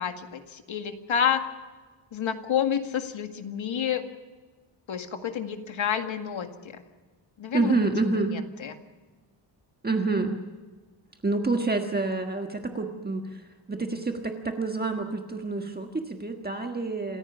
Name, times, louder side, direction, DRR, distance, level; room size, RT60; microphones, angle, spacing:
voice 1, 0.0-1.5 2.1-4.1 4.9-6.8 7.4-7.7 8.0-8.7, left 8 dB, 75° left, 6 dB, 2.1 m, -29 dB
voice 2, 7.5-8.4 9.8-10.4 11.2-13.3 13.7-17.2, right 3 dB, 20° right, 3 dB, 1.5 m, -27 dB
27.5 x 15.0 x 7.1 m, 1.3 s
wide cardioid pair, 175°, 47 cm